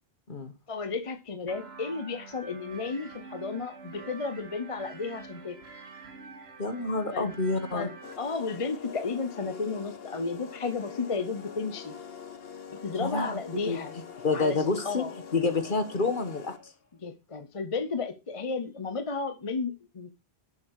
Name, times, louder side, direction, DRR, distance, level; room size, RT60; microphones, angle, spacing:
voice 1, 0.7-5.6 7.1-7.3 7.7-11.9 12.7-13.9 14.3-15.1 17.0-20.1, left 4 dB, 35° left, 9 dB, 0.8 m, -33 dB
sound 1, 1.5-8.1, right 4 dB, 80° right, 1.9 m, -46 dB
voice 2, 6.6-7.9 13.0-13.3 13.7-13.8 14.2-15.0 15.3-16.5, left 3 dB, 55° left, 9 dB, 1.6 m, -28 dB
sound 2, 8.0-16.8, left 7 dB, 70° left, 1.4 m, -44 dB
12.0 x 7.4 x 4.7 m, 0.28 s
omnidirectional pair, 1.0 m